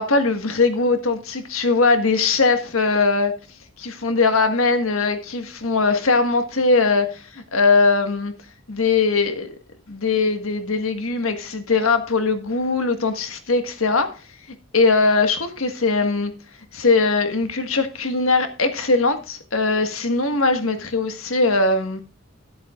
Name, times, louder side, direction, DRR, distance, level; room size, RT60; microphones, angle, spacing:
voice 1, 0.0-3.3 3.8-8.3 8.7-9.5 9.9-14.1 14.7-16.3 16.7-22.0, left 3 dB, 85° left, 1.6 m, -20 dB
12.5 x 11.0 x 2.4 m
head